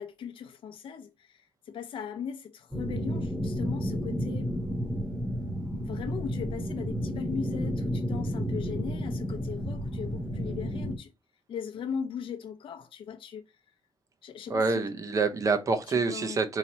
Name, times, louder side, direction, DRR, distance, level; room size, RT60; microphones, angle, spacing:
voice 1, 0.0-4.5 5.8-11.1 11.5-13.4 14.2-14.9 15.9-16.4, left 7 dB, 70° left, 0.6 m, -38 dB
sound 1, 2.7-11.0, equal, 10° right, 1.1 m, -31 dB
voice 2, 14.5-16.6, right 4 dB, 35° right, 0.6 m, -27 dB
4.1 x 3.1 x 2.8 m
wide cardioid pair, 170°, 9 cm